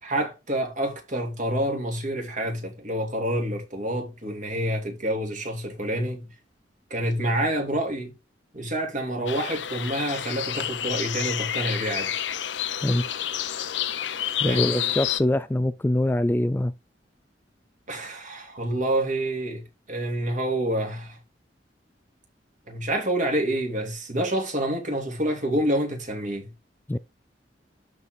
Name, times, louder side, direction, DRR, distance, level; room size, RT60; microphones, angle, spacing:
voice 1, 0.0-6.3 6.9-8.1 8.5-12.2 14.4-14.9 17.9-21.2 22.7-26.5, right 1 dB, 45° right, 3.0 m, -28 dB
sound 1, 9.3-15.2, left 10 dB, 80° left, 0.8 m, -29 dB
voice 2, 14.4-16.7 26.9-27.0, left 1 dB, 10° left, 0.3 m, -23 dB
12.0 x 4.7 x 3.8 m
head